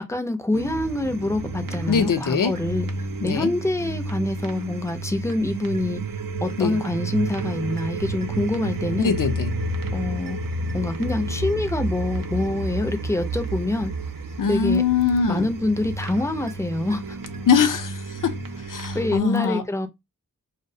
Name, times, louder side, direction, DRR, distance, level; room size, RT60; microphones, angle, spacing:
voice 1, 0.1-2.9 3.2-6.0 6.4-9.1 9.9-10.4 10.7-13.9 14.5-14.8 15.3-17.2 18.9-19.9, left 2 dB, 10° left, 0.4 m, -25 dB
sound 1, 0.5-19.2, right 2 dB, 75° right, 0.5 m, -31 dB
voice 2, 1.9-2.5 3.2-3.5 6.6-6.8 9.0-9.5 14.4-15.5 17.5-18.4 18.7-19.6, left 6 dB, 70° left, 0.5 m, -22 dB
2.3 x 2.1 x 2.6 m
wide cardioid pair, 50°, 33 cm